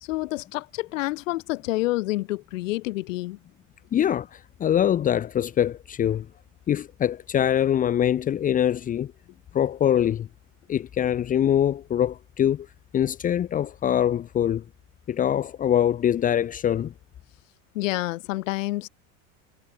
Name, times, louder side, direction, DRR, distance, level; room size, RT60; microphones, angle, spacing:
voice 1, 0.0-3.4 17.7-18.9, left 19 dB, 90° left, 1.6 m, -28 dB
voice 2, 3.9-6.3 6.7-9.1 9.5-10.3 10.7-12.7 12.9-14.6 15.1-16.9, left 10 dB, 20° left, 1.3 m, -23 dB
supercardioid pair, 165°, 38 cm